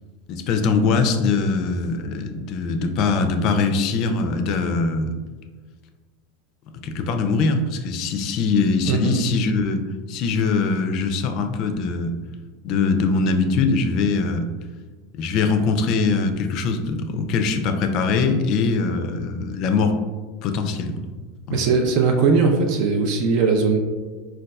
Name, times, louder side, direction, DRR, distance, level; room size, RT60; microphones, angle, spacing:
voice 1, 0.3-5.1 6.8-9.8 10.1-12.1 12.6-14.5 15.1-20.0 20.4-21.0 21.5-21.7, left 4 dB, 55° left, 7 dB, 0.3 m, -22 dB
voice 2, 21.5-23.8, right 4 dB, 60° right, 3 dB, 0.4 m, -19 dB
4.0 x 2.2 x 2.3 m, 1.4 s
hypercardioid pair, 105°, 0 cm